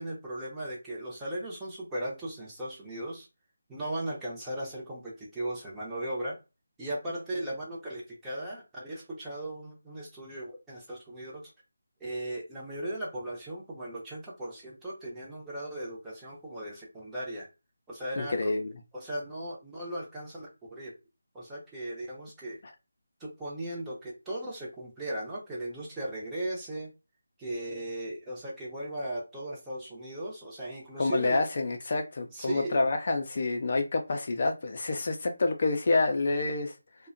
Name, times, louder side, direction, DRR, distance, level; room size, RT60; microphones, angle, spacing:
voice 1, 0.0-3.3 3.7-6.4 6.8-11.4 12.0-17.5 17.9-18.5 18.9-20.9 21.3-22.6 23.2-26.9 27.4-31.4 32.3-32.9, right 1 dB, 10° right, 0.7 m, -37 dB
voice 2, 18.2-18.7 22.6-22.7 31.0-36.7, left 3 dB, 45° left, 0.4 m, -28 dB
2.6 x 2.1 x 2.5 m
figure-of-eight pair, 160°, 0 cm